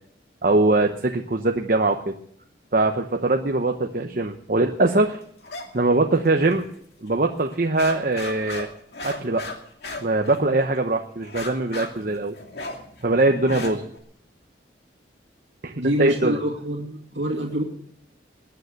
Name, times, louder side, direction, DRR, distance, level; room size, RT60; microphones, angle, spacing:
voice 1, 0.4-2.1 2.7-5.2 5.7-6.6 7.0-8.7 9.0-9.4 10.0-12.3 13.0-13.9 15.6-16.4, right 2 dB, 50° right, 4 dB, 0.9 m, -22 dB
sound 1, 5.4-5.7 6.0-6.7 7.1-7.2 7.5-10.8 11.2-14.0, left 3 dB, 60° left, 2.5 m, -36 dB
voice 2, 15.7-17.6, equal, 80° right, -1 dB, 2.4 m, -26 dB
20.5 x 9.3 x 6.6 m, 0.65 s
head